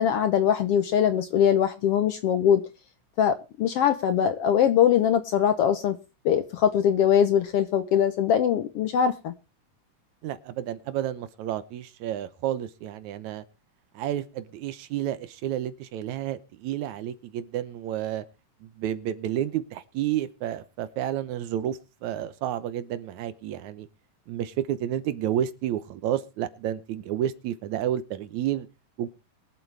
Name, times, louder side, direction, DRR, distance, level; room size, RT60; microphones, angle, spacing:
voice 1, 0.0-2.6 3.2-6.0 6.2-9.3, left 9 dB, 70° left, 10 dB, 1.5 m, -22 dB
voice 2, 10.2-13.4 13.9-18.2 18.6-23.9 24.3-28.7 29.0-29.1, right 11 dB, 75° right, 13 dB, 2.3 m, -30 dB
23.0 x 7.7 x 3.4 m, 0.29 s
omnidirectional pair, 3.4 m